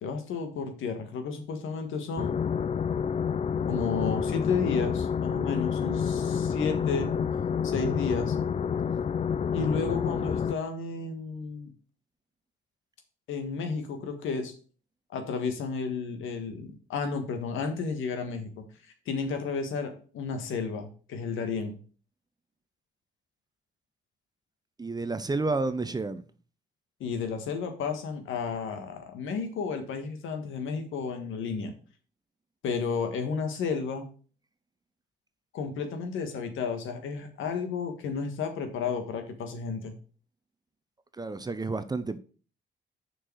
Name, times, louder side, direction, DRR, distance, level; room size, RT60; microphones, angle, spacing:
voice 1, 0.0-2.4 3.7-7.1 7.6-8.3 9.5-11.7 13.3-14.5 15.1-18.6 19.0-21.8 27.0-31.7 32.6-34.0 35.5-39.9, left 5 dB, 80° left, 1.6 m, -32 dB
sound 1, 2.2-10.5, left 7 dB, 35° left, 0.4 m, -28 dB
voice 2, 24.8-26.2 41.2-42.2, right 3 dB, 20° right, 0.7 m, -30 dB
6.4 x 4.7 x 6.2 m
cardioid pair, 90°, 20 cm